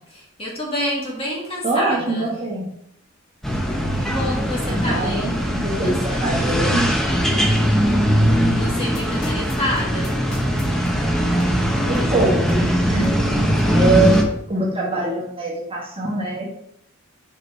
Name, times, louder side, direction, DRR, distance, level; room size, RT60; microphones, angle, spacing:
voice 1, 0.1-2.4 4.0-5.4 5.7-6.8 8.4-10.2, left 1 dB, 25° left, -4 dB, 1.8 m, -29 dB
voice 2, 1.6-2.7 4.6-6.9 11.9-13.1 13.7-14.2 14.5-16.5, right 2 dB, 25° right, -3 dB, 1.5 m, -23 dB
sound 1, 3.4-14.2, equal, ahead, 0.7 m, -20 dB
sound 2, 8.9-14.4, equal, 70° left, 1.7 m, -35 dB
5.7 x 4.7 x 4.3 m, 0.75 s
head